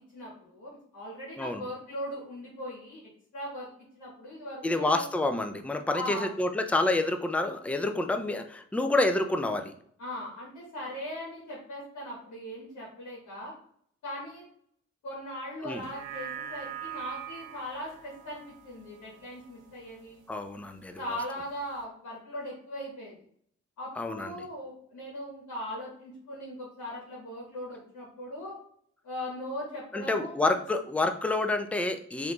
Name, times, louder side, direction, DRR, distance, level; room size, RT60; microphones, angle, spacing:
voice 1, 0.1-3.0 3.3-3.7 3.9-5.1 5.9-6.3 10.0-13.5 14.0-14.4 15.0-20.2 21.0-23.1 23.8-28.6 29.0-30.5, left 1 dB, 80° left, -4 dB, 1.1 m, -39 dB
voice 2, 4.6-9.7 15.6-15.8 20.3-21.2 24.0-24.3 29.9-32.3, left 2 dB, 5° left, 6 dB, 0.4 m, -28 dB
sound 1, 15.7-20.3 20.7-20.8, right 9 dB, 85° right, 0.5 m, -43 dB
3.3 x 2.5 x 2.9 m, 0.64 s
cardioid pair, 50°, 29 cm